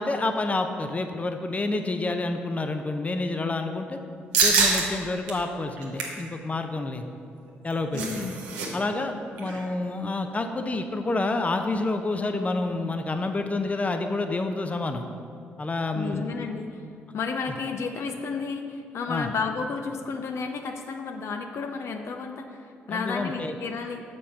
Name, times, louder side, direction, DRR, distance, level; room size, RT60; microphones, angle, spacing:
voice 1, 0.0-4.0 4.4-7.0 7.6-8.3 8.7-9.1 9.4-15.1 15.6-16.3 19.1-19.3 22.9-23.6, left 2 dB, 30° left, 6 dB, 0.7 m, -28 dB
sound 1, 4.3-4.8 5.3-5.4 5.8-6.2 7.5-8.7 8.9-9.1 9.4-9.7, right 4 dB, 90° right, 1.0 m, -24 dB
voice 2, 7.9-8.5 15.9-16.8 17.1-24.0, left 5 dB, 60° left, 4 dB, 0.6 m, -32 dB
7.0 x 5.4 x 5.7 m, 2.3 s
hypercardioid pair, 50°, 5 cm